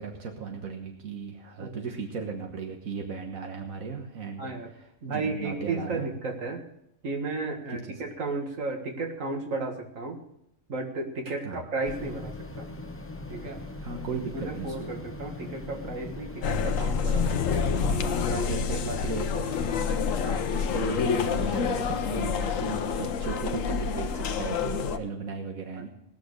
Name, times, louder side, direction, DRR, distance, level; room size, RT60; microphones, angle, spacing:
voice 1, 0.0-4.5 4.8-6.1 7.9-8.0 11.4-11.6 13.8-14.9 18.4-19.9 20.5-25.9, right 5 dB, 90° right, 2 dB, 1.7 m, -36 dB
voice 2, 4.4-4.7 5.0-6.7 7.0-10.2 10.7-12.7 13.3-13.6 14.3-19.0 19.3-19.6 20.2-20.5 25.8-25.9, right 3 dB, 75° right, 3 dB, 2.0 m, -34 dB
sound 1, 11.8-18.5, left 2 dB, 15° left, 0.6 m, -40 dB
sound 2, 16.4-25.0, left 6 dB, 75° left, 1.1 m, -28 dB
sound 3, 17.1-23.1, left 6 dB, 40° left, 1.2 m, -42 dB
19.5 x 6.7 x 6.5 m, 0.77 s
omnidirectional pair, 1.4 m